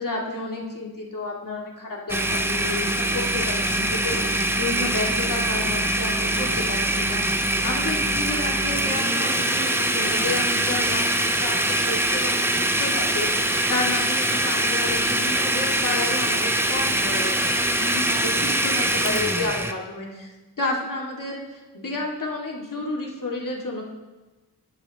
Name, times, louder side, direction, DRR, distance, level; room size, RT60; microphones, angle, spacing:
voice 1, 0.0-20.3 20.6-23.8, left 2 dB, 55° left, -2 dB, 2.3 m, -31 dB
Domestic sounds home sounds, 2.1-19.7, right 1 dB, 5° right, 0.8 m, -23 dB
20.0 x 6.7 x 3.0 m, 1.2 s
cardioid pair, 45°, 39 cm